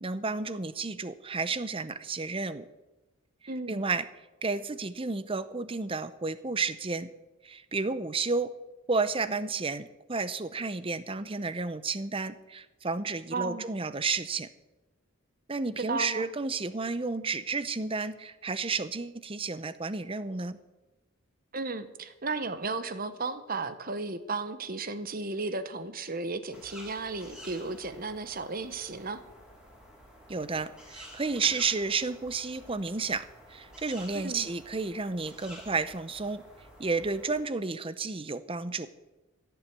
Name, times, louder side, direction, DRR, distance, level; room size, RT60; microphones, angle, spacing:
voice 1, 0.0-2.7 3.7-4.1 4.4-7.1 7.4-8.5 8.9-14.5 15.5-20.6 30.3-36.4 36.8-38.9, right 4 dB, 25° right, 14 dB, 0.7 m, -32 dB
voice 2, 3.5-3.8 13.3-13.6 15.9-16.3 21.5-29.2 34.1-34.5, right 3 dB, 40° right, 12 dB, 1.0 m, -34 dB
sound 1, 26.5-37.4, equal, 5° right, 4.1 m, -51 dB
15.5 x 7.0 x 9.3 m, 1.1 s
head